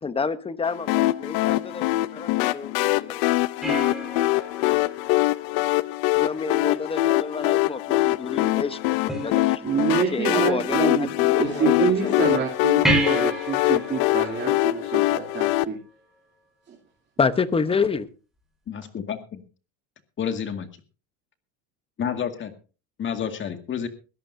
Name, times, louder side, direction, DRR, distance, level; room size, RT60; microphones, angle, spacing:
voice 1, 0.0-3.2 6.2-9.6 10.0-12.4 17.2-18.1, left 5 dB, 15° left, 13 dB, 1.0 m, -29 dB
sound 1, 0.9-15.6, left 18 dB, 75° left, 0.7 m, -23 dB
sound 2, 3.6-6.2 9.1-10.1 12.8-15.8 18.8-18.9, right 1 dB, ahead, 5.8 m, -30 dB
voice 2, 9.6-15.8 16.7-16.8, right 6 dB, 30° right, -2 dB, 2.9 m, -26 dB
voice 3, 18.7-19.4 20.2-20.7 22.0-22.5 23.0-23.9, left 8 dB, 35° left, 7 dB, 2.0 m, -29 dB
21.0 x 14.0 x 2.7 m, 0.34 s
cardioid pair, 130°, 35 cm